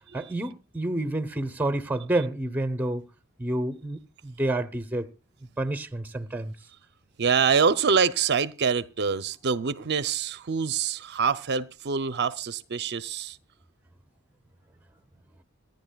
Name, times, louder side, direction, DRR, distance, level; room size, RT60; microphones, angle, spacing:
voice 1, 0.1-3.0 3.4-5.1 5.6-6.5, right 1 dB, 10° right, 0.9 m, -29 dB
voice 2, 7.2-13.4, right 6 dB, 50° right, 0.6 m, -25 dB
26.5 x 10.5 x 2.3 m
head